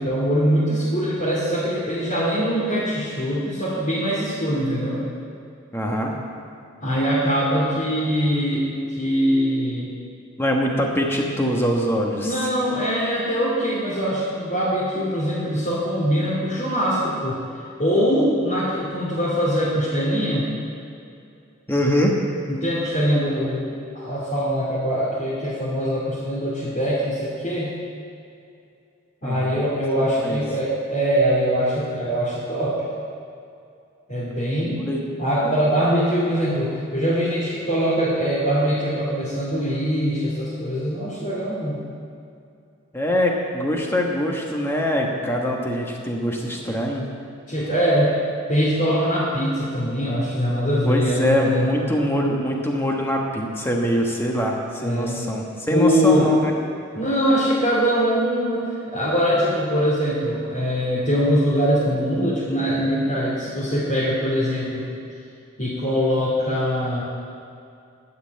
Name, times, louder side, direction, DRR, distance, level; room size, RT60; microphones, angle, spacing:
voice 1, 0.0-5.0 6.8-9.9 12.2-17.4 17.8-20.5 22.5-23.7 23.9-27.7 29.2-32.8 34.1-34.8 35.2-41.8 47.5-48.2 48.5-51.7 54.8-55.2 55.7-56.3 56.9-64.9 65.6-67.0, equal, 35° left, -10 dB, 2.6 m, -22 dB
voice 2, 5.7-6.1 10.4-12.5 21.7-22.1 29.2-29.6 30.2-30.4 34.9-35.0 42.9-47.1 50.9-56.5, equal, 10° left, 0 dB, 1.2 m, -23 dB
11.5 x 6.6 x 8.5 m, 2.5 s
head